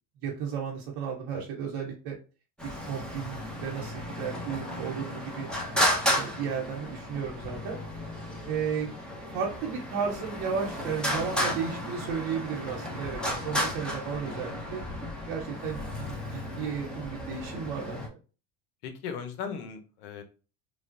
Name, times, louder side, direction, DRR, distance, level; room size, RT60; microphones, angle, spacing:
voice 1, 0.2-2.2 2.8-5.5 6.1-7.8 8.5-8.9 9.3-14.8 15.3-18.2, right 6 dB, 70° right, -2 dB, 0.9 m, -34 dB
Traffic noise roadway noise, 2.6-18.1, equal, ahead, 0.9 m, -33 dB
voice 2, 18.8-20.2, left 7 dB, 85° left, 7 dB, 0.8 m, -38 dB
3.2 x 2.3 x 2.6 m, 0.34 s
supercardioid pair, 90°, 43 cm